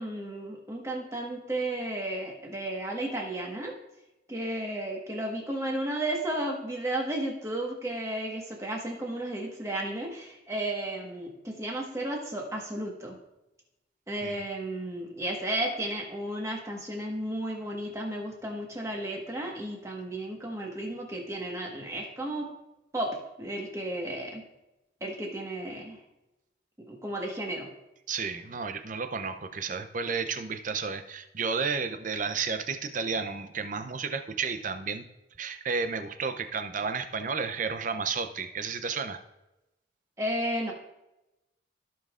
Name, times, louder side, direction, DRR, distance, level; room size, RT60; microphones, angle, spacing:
voice 1, 0.0-3.7 4.3-13.2 14.1-22.5 22.9-24.4 25.0-26.0 26.9-27.7 40.2-40.7, right 1 dB, 15° right, 0 dB, 1.4 m, -33 dB
voice 2, 28.1-35.1 35.4-39.2, right 5 dB, 40° right, 8 dB, 0.6 m, -32 dB
15.5 x 5.4 x 2.5 m, 0.94 s
head